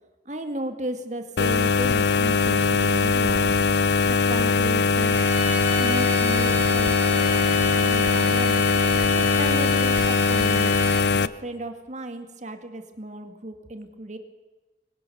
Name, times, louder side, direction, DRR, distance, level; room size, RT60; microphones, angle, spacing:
voice 1, 0.3-3.5 4.1-5.2 5.8-8.6 9.1-14.2, right 1 dB, 45° right, 7 dB, 2.1 m, -35 dB
sound 1, 1.4-11.3, left 4 dB, 70° left, 0.6 m, -21 dB
sound 2, 5.0-11.2, left 1 dB, 10° right, 3.4 m, -32 dB
23.0 x 18.0 x 7.0 m, 1.2 s
head